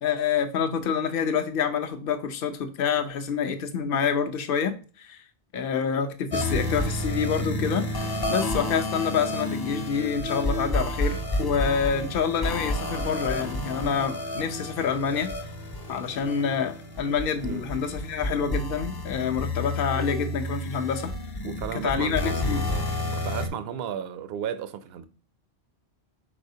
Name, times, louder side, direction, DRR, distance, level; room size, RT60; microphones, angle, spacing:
voice 1, 0.0-5.2 5.5-15.3 15.9-21.1 21.8-22.6, left 6 dB, 60° left, 0.8 m, -27 dB
sound 1, 6.3-23.5, left 1 dB, 35° left, 0.4 m, -30 dB
voice 2, 21.4-25.1, right 8 dB, 70° right, 0.8 m, -35 dB
4.9 x 3.9 x 2.7 m
omnidirectional pair, 1.1 m